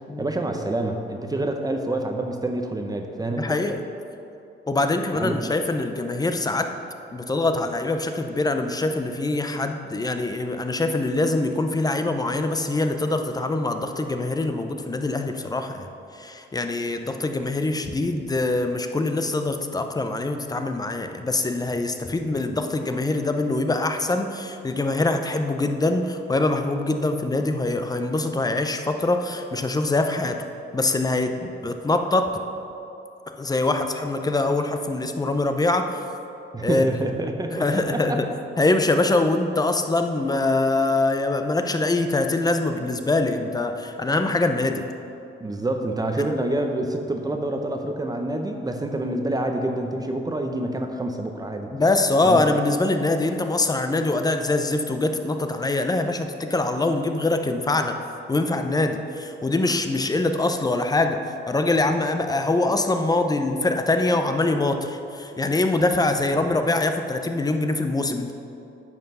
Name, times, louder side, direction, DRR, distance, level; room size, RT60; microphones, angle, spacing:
voice 1, 0.2-3.6 5.1-5.4 36.5-38.2 45.4-51.7 52.2-52.4, right 1 dB, 20° right, 4 dB, 0.8 m, -27 dB
voice 2, 3.4-3.8 4.7-6.7 7.1-15.9 16.2-30.4 30.7-32.3 33.3-36.0 36.6-36.8 37.5-38.3 38.6-44.8 51.7-57.9 58.3-68.3, left 2 dB, 20° left, 6 dB, 0.7 m, -24 dB
9.4 x 5.7 x 5.5 m, 2.7 s
cardioid pair, 90°, 20 cm